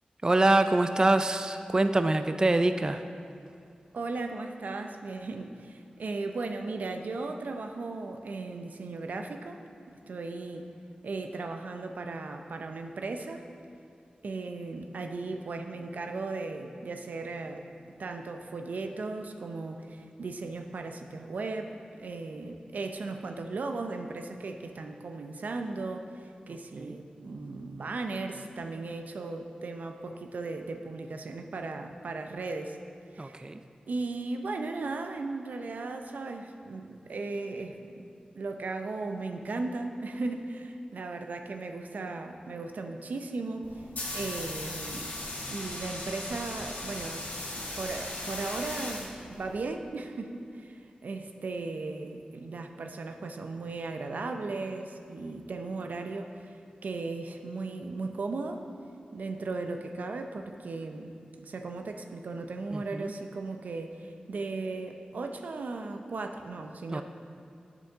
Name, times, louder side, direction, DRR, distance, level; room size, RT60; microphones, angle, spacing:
voice 1, 0.2-3.0 26.8-27.0 33.2-33.6 62.7-63.1 66.9-67.0, right 2 dB, 30° right, 8 dB, 0.3 m, -25 dB
voice 2, 3.9-9.6 10.1-10.7 11.0-13.4 14.2-17.7 18.0-32.8 33.1-33.4 33.9-38.1 38.3-43.8 44.1-45.2 45.5-47.3 47.6-56.6 56.8-58.7 59.1-67.0, right 3 dB, 85° right, 5 dB, 0.6 m, -36 dB
sound 1, 43.6-49.6, left 2 dB, 80° left, 1.5 m, -38 dB
9.6 x 6.9 x 3.5 m, 2.4 s
wide cardioid pair, 60°, 3 cm